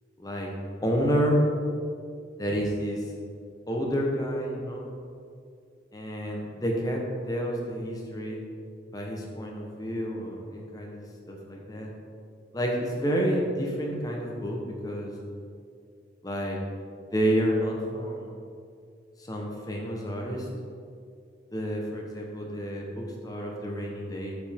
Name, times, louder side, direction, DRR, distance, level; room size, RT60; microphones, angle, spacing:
voice 1, 0.2-0.5 0.8-1.4 2.4-3.1 3.7-4.9 5.9-8.4 8.9-11.0 11.3-11.9 12.5-15.1 16.2-16.6 17.0-18.3 19.2-20.5 21.5-24.3, equal, 20° left, -1 dB, 1.0 m, -29 dB
9.1 x 5.2 x 3.6 m, 2.3 s
head